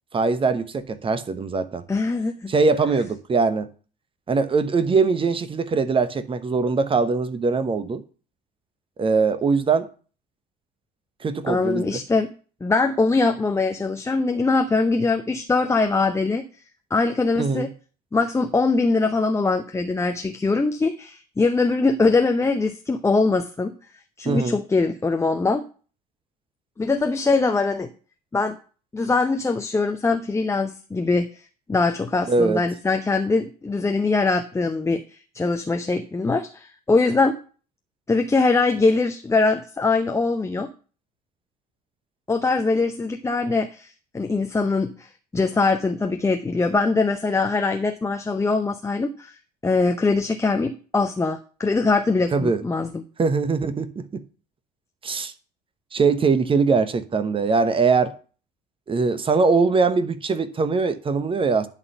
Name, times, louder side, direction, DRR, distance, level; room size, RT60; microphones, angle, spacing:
voice 1, 0.1-1.9 2.5-3.7 4.3-8.0 9.0-9.9 11.2-12.0 17.4-17.7 24.3-24.6 32.3-32.6 52.3-52.6 53.2-54.2 55.0-55.3 55.9-58.1 58.9-61.7, right 4 dB, 25° right, 1.0 m, -22 dB
voice 2, 1.9-2.5 11.5-12.3 12.6-16.5 16.9-17.7 18.1-23.7 24.2-25.6 26.8-27.9 28.3-28.5 28.9-31.3 31.7-35.0 35.3-37.4 38.1-40.7 42.3-49.4 49.6-53.0, left 3 dB, 15° left, 0.7 m, -22 dB
11.0 x 4.1 x 6.7 m
figure-of-eight pair, 55°, 21 cm